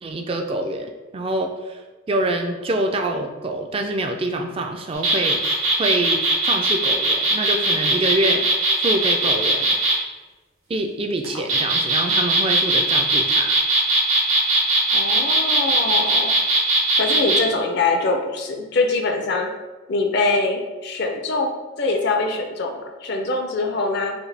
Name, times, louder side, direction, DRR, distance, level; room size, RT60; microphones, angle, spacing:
voice 1, 0.0-1.8 2.1-5.4 5.8-8.4 8.8-9.8 10.7-13.6, right 1 dB, 25° right, 4 dB, 0.3 m, -25 dB
sound 1, 4.9-10.0 11.2-17.4, right 2 dB, 90° right, 1.0 m, -19 dB
voice 2, 14.9-16.3 17.0-19.5 19.9-24.1, left 3 dB, 50° left, 3 dB, 0.5 m, -23 dB
5.0 x 2.2 x 3.3 m, 1.2 s
head